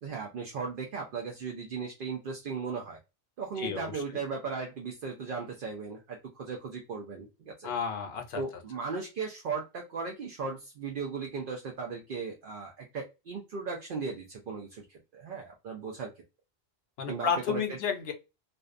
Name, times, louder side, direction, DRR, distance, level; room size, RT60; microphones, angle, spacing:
voice 1, 0.0-3.0 3.4-7.7 8.4-16.1 17.1-17.8, right 5 dB, 60° right, 0.7 m, -37 dB
voice 2, 3.6-4.0 7.6-8.4 17.0-18.1, left 7 dB, 70° left, 0.8 m, -32 dB
2.5 x 2.1 x 2.4 m
omnidirectional pair, 1.1 m